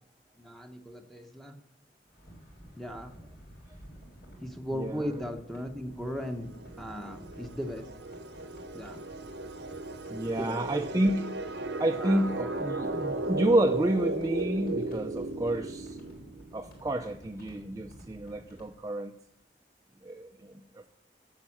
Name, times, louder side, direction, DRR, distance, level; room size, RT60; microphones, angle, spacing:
voice 1, 0.4-1.6 2.8-3.1 4.4-6.5 6.8-7.9 8.7-9.0 10.2-10.6 12.0-12.3, equal, ahead, 5 dB, 0.9 m, -37 dB
sound 1, 2.1-18.7, equal, 55° left, 4.2 m, -52 dB
voice 2, 4.8-5.1 10.1-11.3 11.8-16.0 16.5-19.1 20.0-20.9, right 1 dB, 20° right, 5 dB, 0.5 m, -30 dB
sound 2, 6.2-16.7, right 2 dB, 70° right, 0.9 m, -36 dB
8.9 x 7.3 x 8.7 m, 0.74 s
head